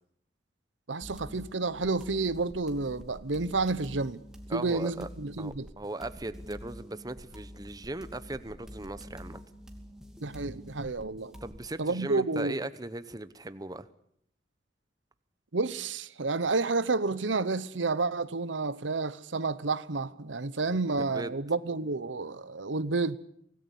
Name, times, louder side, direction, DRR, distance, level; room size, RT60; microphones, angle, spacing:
voice 1, 0.9-4.2 4.5-5.7 10.2-11.3 11.8-12.5 15.5-23.2, right 3 dB, 85° right, 0.9 m, -30 dB
sound 1, 1.0-11.7, equal, 5° right, 2.7 m, -47 dB
voice 2, 4.5-5.1 5.4-9.4 11.4-13.9 21.1-21.3, right 2 dB, 20° right, 0.9 m, -38 dB
25.0 x 18.5 x 8.4 m
head